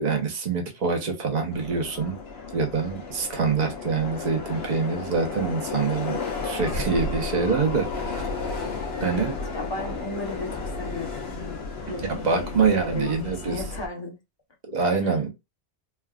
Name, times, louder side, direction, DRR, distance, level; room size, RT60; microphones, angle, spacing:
voice 1, 0.0-2.2 2.5-8.3 9.0-9.3 12.1-13.6 14.6-15.3, right 5 dB, 45° right, 0.8 m, -25 dB
Subway metro underground, 1.5-13.9, left 4 dB, 70° left, 1.0 m, -33 dB
voice 2, 9.2-11.6 11.9-14.2 15.0-15.2, left 3 dB, 25° left, 0.8 m, -36 dB
3.3 x 2.3 x 2.3 m
omnidirectional pair, 1.1 m